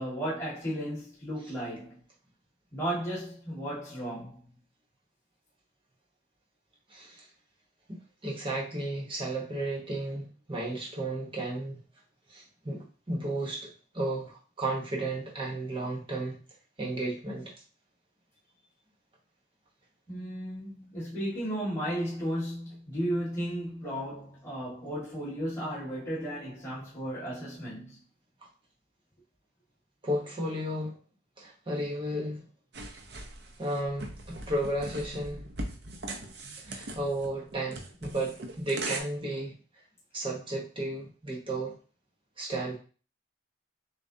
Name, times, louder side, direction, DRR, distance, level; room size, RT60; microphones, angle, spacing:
voice 1, 0.0-2.0 2.7-4.4 20.1-28.0, equal, 15° left, 1.8 m, -34 dB
voice 2, 6.9-7.3 7.9-11.8 12.3-16.4 16.8-17.5 30.0-31.0 31.4-32.4 33.6-35.4 36.6-39.5 40.1-41.8 42.4-42.8, right 1 dB, 25° right, 1.1 m, -33 dB
sound 1, 32.7-39.0, right 2 dB, 55° right, 0.7 m, -40 dB
6.8 x 2.4 x 2.8 m
head